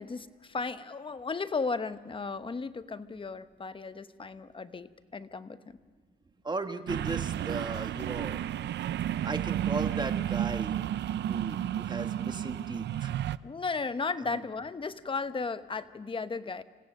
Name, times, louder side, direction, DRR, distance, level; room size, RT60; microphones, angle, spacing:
voice 1, 0.0-5.8 13.4-16.6, left 4 dB, 25° left, 12 dB, 1.0 m, -35 dB
voice 2, 6.4-8.4 9.2-10.8 11.3-13.1 14.2-14.4, right 3 dB, 20° right, 7 dB, 1.6 m, -36 dB
sound 1, 6.9-13.4, right 11 dB, 60° right, 0.6 m, -32 dB
27.0 x 16.5 x 6.5 m, 1.6 s
cardioid pair, 90°, 20 cm